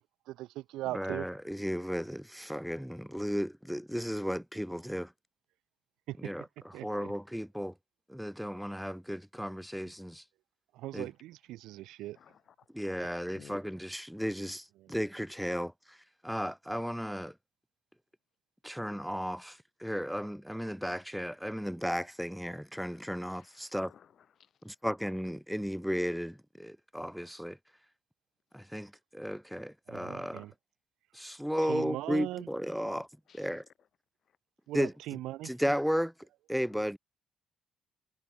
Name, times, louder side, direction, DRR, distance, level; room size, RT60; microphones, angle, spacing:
voice 1, 0.3-1.3 6.1-6.3 6.7-7.1 10.7-12.2 14.8-14.9 29.9-30.5 31.7-32.5 34.7-35.5, right 16 dB, 90° right, 1.2 m, -39 dB
voice 2, 0.9-5.1 6.2-7.7 8.1-10.2 10.9-11.1 12.7-16.0 16.2-17.3 18.6-23.9 24.6-27.6 28.5-30.4 31.1-33.1 33.4-33.6 34.7-34.9 35.4-36.1 36.5-37.0, equal, ahead, 1.0 m, -34 dB
voice 3, 12.1-12.7 13.3-13.6 22.9-23.0 23.2-24.8 32.8-33.9 34.2-34.4 36.7-36.9, left 8 dB, 60° left, 3.2 m, -59 dB
cardioid pair, 90°, 0 cm